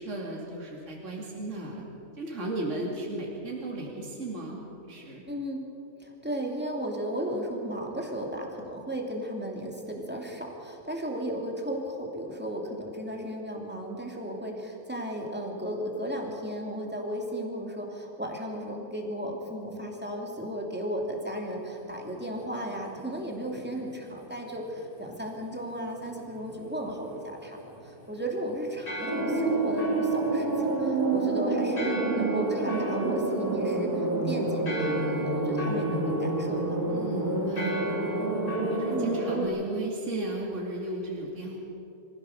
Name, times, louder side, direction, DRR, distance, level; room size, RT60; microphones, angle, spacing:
voice 1, 0.0-1.8 2.2-5.2 36.8-37.8 38.7-41.6, right 2 dB, 55° right, -2 dB, 2.9 m, -35 dB
voice 2, 5.3-5.6 6.0-33.9 34.2-36.8 38.9-39.1, equal, 5° right, 0 dB, 2.8 m, -35 dB
sound 1, 21.4-39.0, equal, 80° left, 6.3 m, -42 dB
sound 2, 29.1-39.5, right 2 dB, 90° right, 3.8 m, -28 dB
25.0 x 15.5 x 6.8 m, 3.0 s
omnidirectional pair, 1.6 m